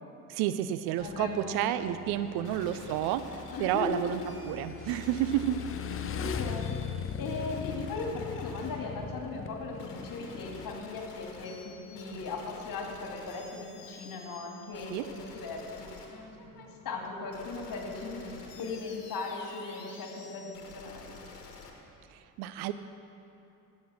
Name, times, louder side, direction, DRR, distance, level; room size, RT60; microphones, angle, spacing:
voice 1, 0.3-4.2 4.5-5.6 14.9-15.1 22.1-22.7, right 12 dB, 55° right, 12 dB, 0.6 m, -30 dB
voice 2, 1.0-1.7 2.4-2.5 3.5-4.0 6.0-6.8 7.1-16.0 16.4-21.2, left 3 dB, 45° left, 1 dB, 2.4 m, -38 dB
Motorcycle / Engine, 1.0-10.8, left 7 dB, 30° left, 0.6 m, -40 dB
sound 1, 2.4-21.7, left 4 dB, 85° left, 1.3 m, -49 dB
15.0 x 6.3 x 6.3 m, 2.8 s
hypercardioid pair, 60°, 46 cm